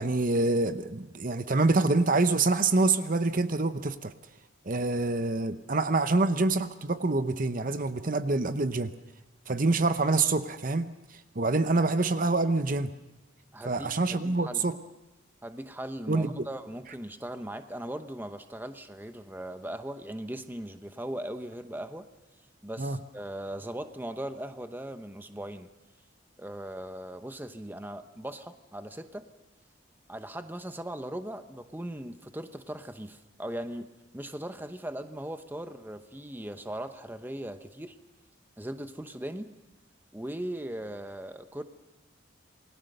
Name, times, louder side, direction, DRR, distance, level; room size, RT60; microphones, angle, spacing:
voice 1, 0.0-4.1 4.7-8.9 9.5-13.0 13.6-14.8 16.1-16.5 22.8-23.0, right 3 dB, 40° right, 11 dB, 0.8 m, -26 dB
voice 2, 13.5-14.7 15.4-22.1 22.6-25.7 26.4-29.3 30.1-33.9 34.1-38.0 38.6-39.5 40.1-41.6, right 1 dB, 10° right, 9 dB, 0.9 m, -39 dB
28.0 x 21.0 x 6.7 m, 1.0 s
head